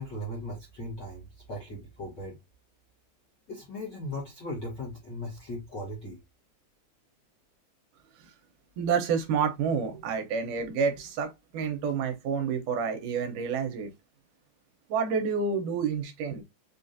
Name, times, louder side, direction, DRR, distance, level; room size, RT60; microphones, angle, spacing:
voice 1, 0.0-2.3 3.5-6.2, left 1 dB, 50° left, 1.3 m, -38 dB
voice 2, 8.8-13.9 14.9-16.4, right 6 dB, 75° right, 2.2 m, -29 dB
5.3 x 2.4 x 2.6 m
omnidirectional pair, 3.8 m